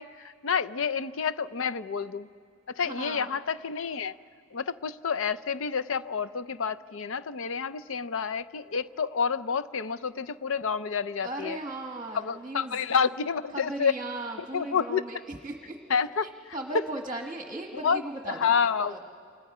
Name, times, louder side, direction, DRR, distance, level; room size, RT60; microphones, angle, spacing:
voice 1, 0.0-2.3 2.7-4.1 4.5-11.6 12.1-13.9 14.5-15.0 15.9-16.3 17.8-18.0 18.4-19.0, left 6 dB, 65° left, 14 dB, 0.5 m, -29 dB
voice 2, 2.8-3.4 11.2-12.8 13.5-15.8 16.2-18.5 18.8-19.0, right 2 dB, 20° right, 2 dB, 1.3 m, -37 dB
28.5 x 26.0 x 4.9 m, 2.2 s
head